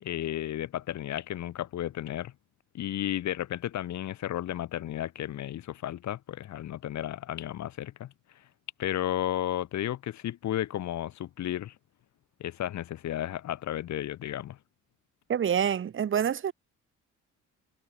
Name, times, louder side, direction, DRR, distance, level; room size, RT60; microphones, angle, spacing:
voice 1, 0.0-2.3 2.7-8.4 8.8-11.7 12.4-14.6, left 12 dB, 70° left, 1.4 m, -33 dB
voice 2, 15.3-16.5, right 8 dB, 40° right, 0.9 m, -27 dB
cardioid pair, 90°, 30 cm